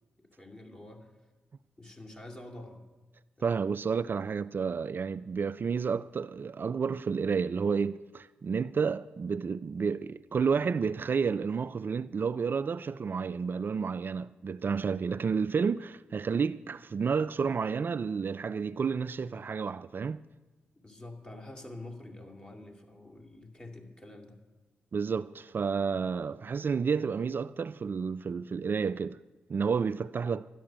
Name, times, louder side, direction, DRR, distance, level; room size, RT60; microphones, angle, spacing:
voice 1, 0.2-1.1 1.8-2.8 3.4-3.6 20.8-24.4, left 2 dB, 25° left, 2.6 m, -47 dB
voice 2, 3.4-20.2 24.9-29.2 29.5-30.5, right 5 dB, 50° right, 0.3 m, -30 dB
12.5 x 10.0 x 7.5 m
supercardioid pair, 45°, 4 cm